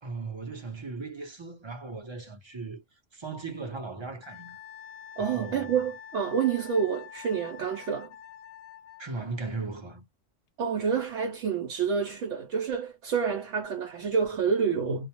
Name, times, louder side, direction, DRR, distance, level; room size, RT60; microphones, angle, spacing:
voice 1, 0.0-2.8 3.1-4.6 5.2-5.8 9.0-10.1, right 3 dB, 30° right, 0.6 m, -37 dB
Wind instrument woodwind instrument, 4.2-9.1, left 8 dB, 60° left, 0.8 m, -46 dB
voice 2, 5.2-8.1 10.6-15.1, right 6 dB, 75° right, 0.9 m, -28 dB
2.2 x 2.1 x 2.8 m
omnidirectional pair, 1.3 m